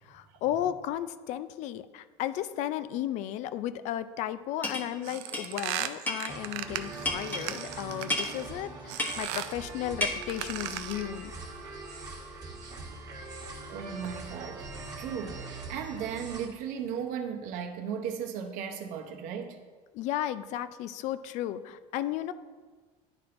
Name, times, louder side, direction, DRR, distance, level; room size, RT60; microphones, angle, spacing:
voice 1, 0.0-11.3 19.9-22.3, left 12 dB, 60° left, 13 dB, 0.4 m, -34 dB
sound 1, 4.6-4.9 5.3-5.5 6.1-6.3 7.0-7.4 8.1-8.3 9.0-9.3 10.0-10.1, left 1 dB, 15° left, 0.9 m, -31 dB
sound 2, 5.0-8.5 8.9-9.6 10.2-11.1, right 12 dB, 85° right, 0.4 m, -37 dB
sound 3, 6.3-16.5, right 3 dB, 25° right, 1.4 m, -42 dB
voice 2, 13.7-14.6 15.0-19.6, right 7 dB, 65° right, 5 dB, 0.8 m, -36 dB
10.5 x 4.3 x 2.5 m, 1.5 s
cardioid pair, 130°, 14 cm